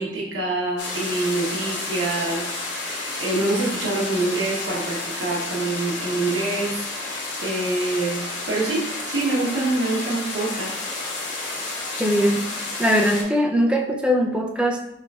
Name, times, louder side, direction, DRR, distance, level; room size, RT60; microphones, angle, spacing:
voice 1, 0.0-10.9, right 2 dB, 75° right, -3 dB, 1.0 m, -26 dB
sound 1, 0.8-13.2, left 2 dB, 80° left, 1.1 m, -31 dB
voice 2, 12.0-12.5 12.8-14.8, equal, 5° right, 1 dB, 0.4 m, -20 dB
5.9 x 3.1 x 2.3 m, 0.84 s
head